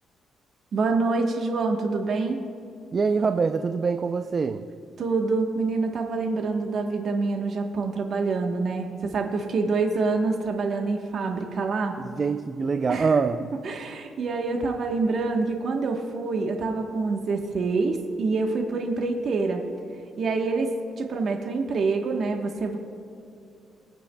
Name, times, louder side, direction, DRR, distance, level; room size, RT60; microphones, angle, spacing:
voice 1, 0.7-2.4 5.0-12.0 12.9-13.1 13.6-19.6 20.2-22.8, right 3 dB, 60° right, 3 dB, 1.1 m, -26 dB
voice 2, 2.9-4.6 12.2-13.4, right 5 dB, 40° right, 9 dB, 0.4 m, -24 dB
23.5 x 8.9 x 2.2 m, 2.5 s
cardioid pair, 90°, 0 cm